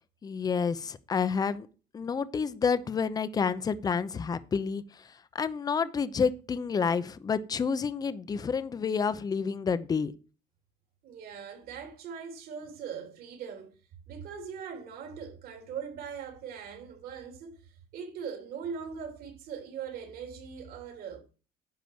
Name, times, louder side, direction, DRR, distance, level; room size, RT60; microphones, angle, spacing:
voice 1, 0.2-1.7 1.9-4.8 5.3-10.1, left 5 dB, 20° left, 0.7 m, -29 dB
voice 2, 11.0-13.8 14.1-21.2, right 7 dB, 60° right, 3.5 m, -41 dB
10.5 x 5.1 x 7.8 m
cardioid pair, 135°, 17 cm